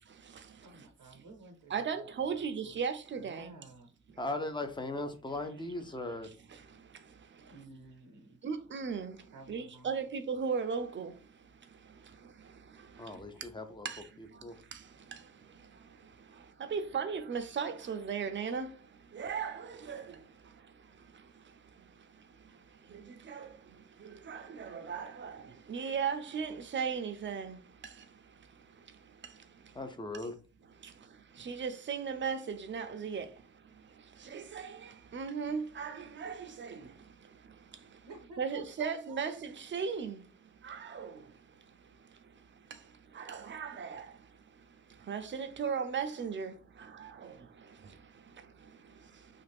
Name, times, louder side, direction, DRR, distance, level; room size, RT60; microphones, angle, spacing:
voice 1, 0.6-2.8 3.2-3.9 7.1-7.2 7.4-8.4 9.3-10.1 38.0-39.2, right 3 dB, 90° right, 0.7 m, -53 dB
voice 2, 1.7-3.5 8.4-9.2 9.5-11.1 13.9-14.0 16.7-18.7 19.2-20.0 23.3-23.5 24.3-25.3 25.7-27.6 31.5-33.3 34.3-34.7 35.1-36.7 38.4-40.2 40.7-41.1 43.3-44.0 45.1-46.5, right 6 dB, 40° right, 0.5 m, -36 dB
voice 3, 4.2-6.3 13.0-13.9 14.4-14.5 29.7-30.3, left 2 dB, 15° left, 0.5 m, -38 dB
2.5 x 2.4 x 3.3 m
wide cardioid pair, 105°, 31 cm